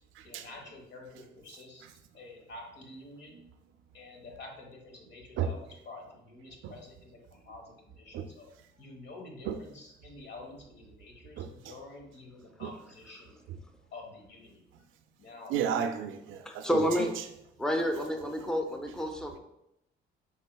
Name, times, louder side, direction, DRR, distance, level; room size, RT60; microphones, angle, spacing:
voice 1, 0.2-1.9 2.1-3.4 3.9-13.4 13.9-14.6 15.2-15.5 16.8-17.0 17.9-18.2, left 2 dB, 60° left, 1.2 m, -48 dB
voice 2, 15.5-16.9, right 8 dB, 85° right, 0.4 m, -32 dB
voice 3, 16.5-17.1 17.6-19.4, equal, 5° left, 0.6 m, -29 dB
5.4 x 3.6 x 2.2 m
cardioid pair, 90°, 20 cm